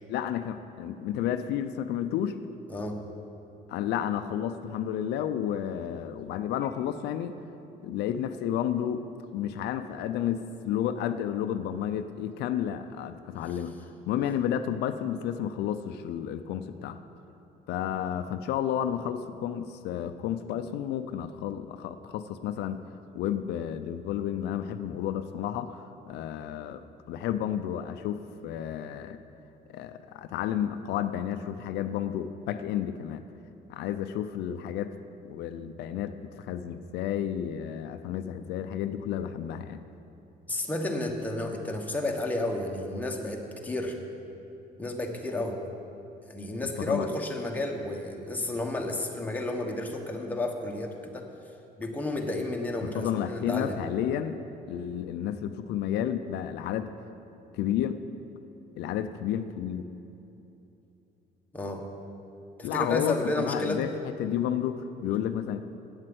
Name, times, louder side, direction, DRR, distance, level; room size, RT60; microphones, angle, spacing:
voice 1, 0.1-2.4 3.7-7.3 7.8-9.1 9.3-13.7 14.1-17.0 17.7-22.8 23.1-29.2 29.7-33.2 33.7-34.9 35.2-39.8 46.6-47.1 52.9-54.4 54.7-56.9 57.5-58.0 58.8-59.8 62.6-63.9 64.2-65.6, left 10 dB, 80° left, 9 dB, 0.5 m, -31 dB
voice 2, 40.5-44.0 44.8-45.6 46.3-51.3 51.8-53.8 61.5-61.8 62.6-63.8, left 1 dB, 10° left, 1 dB, 1.3 m, -31 dB
8.8 x 7.6 x 7.9 m, 2.9 s
cardioid pair, 110°, 17 cm